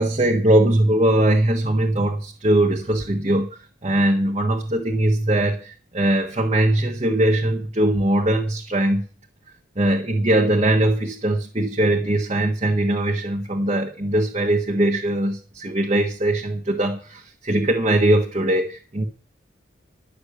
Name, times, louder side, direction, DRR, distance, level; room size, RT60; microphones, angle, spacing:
voice 1, 0.0-3.5 3.8-9.1 9.8-19.0, right 1 dB, 30° right, 1.4 m, -21 dB
11.5 x 6.7 x 8.2 m
head